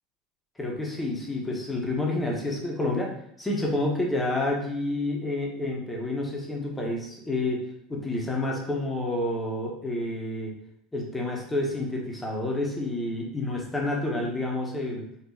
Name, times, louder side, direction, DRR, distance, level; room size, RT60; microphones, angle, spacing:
voice 1, 0.6-3.1 3.4-7.6 7.9-10.5 10.9-15.0, left 2 dB, 15° left, -1 dB, 1.1 m, -29 dB
4.5 x 2.6 x 2.7 m, 0.70 s
supercardioid pair, 95°, 0 cm